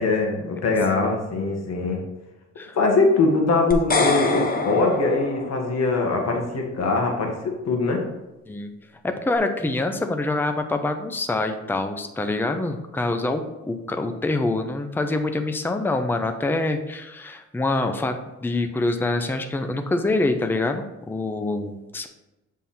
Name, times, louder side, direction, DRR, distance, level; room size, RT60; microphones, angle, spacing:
voice 1, 0.0-2.0 2.7-8.0, left 3 dB, 60° left, 1 dB, 1.5 m, -22 dB
sound 1, 3.7-6.0, left 3 dB, 30° left, 0.9 m, -25 dB
voice 2, 9.0-22.1, left 2 dB, 5° left, 7 dB, 0.5 m, -25 dB
7.4 x 3.6 x 4.2 m, 0.99 s
cardioid pair, 90°, 30 cm